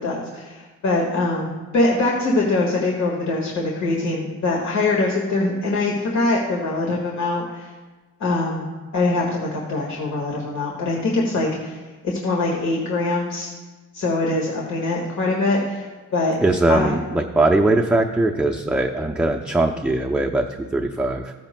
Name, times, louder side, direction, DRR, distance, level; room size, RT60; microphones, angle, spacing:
voice 1, 0.0-7.7 8.2-13.5 13.9-16.4 16.7-16.9, left 2 dB, 65° left, -1 dB, 1.7 m, -23 dB
voice 2, 16.4-21.3, right 2 dB, 5° right, 1 dB, 0.5 m, -20 dB
14.5 x 10.5 x 2.2 m, 1.3 s
cardioid pair, 90°, 30 cm